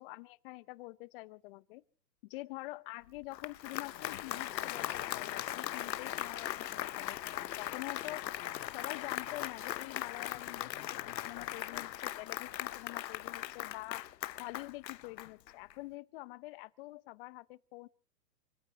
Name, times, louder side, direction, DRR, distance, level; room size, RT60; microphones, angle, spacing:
voice 1, 0.0-1.8 2.3-8.2 8.7-14.0 14.4-17.9, left 22 dB, 35° left, 0.8 m, -46 dB
Applause, 3.2-15.7, left 13 dB, 80° left, 0.8 m, -39 dB
sound 1, 3.7-11.9, left 13 dB, 55° left, 1.6 m, -56 dB
29.5 x 16.5 x 2.9 m
hypercardioid pair, 130°, 50 cm